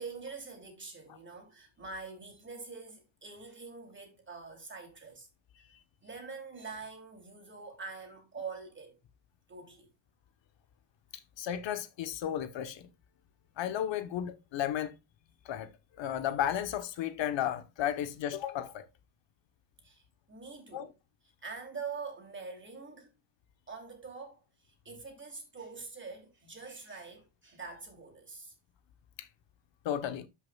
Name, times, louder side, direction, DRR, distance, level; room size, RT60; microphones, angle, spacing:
voice 1, 0.0-5.3 6.0-9.0 9.5-9.9 19.8-20.9 21.4-23.1 23.7-28.5, right 4 dB, 25° right, 3.0 m, -45 dB
voice 2, 11.4-12.9 13.6-14.9 15.4-15.7 16.0-18.8 20.7-20.9 29.2-29.3 29.8-30.3, left 10 dB, 65° left, 1.0 m, -33 dB
12.0 x 5.6 x 2.3 m
cardioid pair, 105°, 47 cm